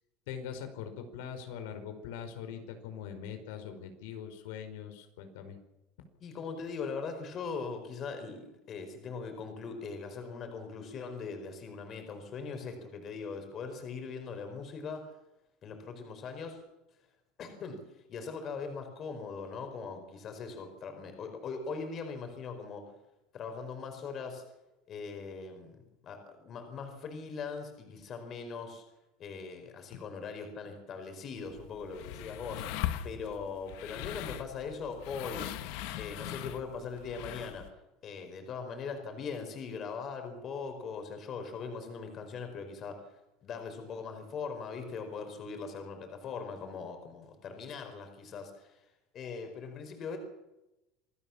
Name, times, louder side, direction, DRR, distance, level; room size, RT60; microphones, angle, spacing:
voice 1, 0.3-5.6, left 8 dB, 85° left, 7 dB, 5.0 m, -42 dB
voice 2, 6.2-15.1 15.6-16.6 17.4-17.8 18.1-22.9 23.3-24.4 24.9-28.8 29.2-32.8 33.0-35.5 36.0-37.7 38.0-48.8 49.1-50.2, left 5 dB, 30° left, 6 dB, 4.5 m, -40 dB
sound 1, 31.4-37.7, left 12 dB, 65° left, 1.8 m, -40 dB
26.5 x 18.0 x 7.2 m, 0.94 s
cardioid pair, 175°, 0 cm